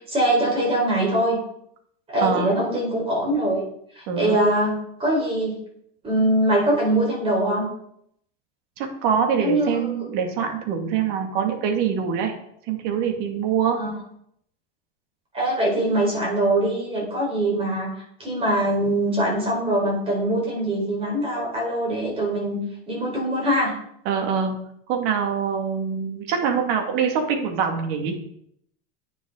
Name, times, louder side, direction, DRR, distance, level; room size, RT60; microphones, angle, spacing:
voice 1, 0.1-1.4 2.1-3.6 3.9-4.7 5.0-5.5 6.0-7.7 9.4-10.0 13.7-14.0 15.3-22.6 22.9-23.7, right 1 dB, 20° right, -2 dB, 4.3 m, -23 dB
voice 2, 2.2-2.6 4.1-4.4 8.8-12.3 12.7-13.8 24.1-24.6 24.9-28.1, right 7 dB, 55° right, 4 dB, 2.2 m, -24 dB
9.9 x 9.2 x 3.8 m, 0.72 s
supercardioid pair, 155°, 30 cm